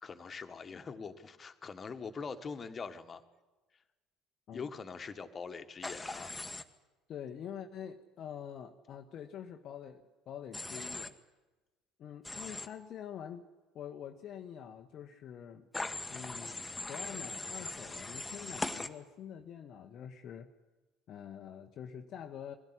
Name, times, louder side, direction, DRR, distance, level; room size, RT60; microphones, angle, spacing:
voice 1, 0.0-3.2 4.5-6.3, left 5 dB, 30° left, 9 dB, 1.6 m, -43 dB
Human voice / Train, 5.8-6.6 10.5-11.1 12.2-12.7 15.7-18.9, left 2 dB, 10° left, 1.4 m, -40 dB
voice 2, 7.1-11.1 12.0-13.5 13.7-15.7 16.1-20.5 21.1-22.6, left 9 dB, 45° left, 4 dB, 1.1 m, -46 dB
22.5 x 16.0 x 9.9 m, 1.2 s
figure-of-eight pair, 60°, 0 cm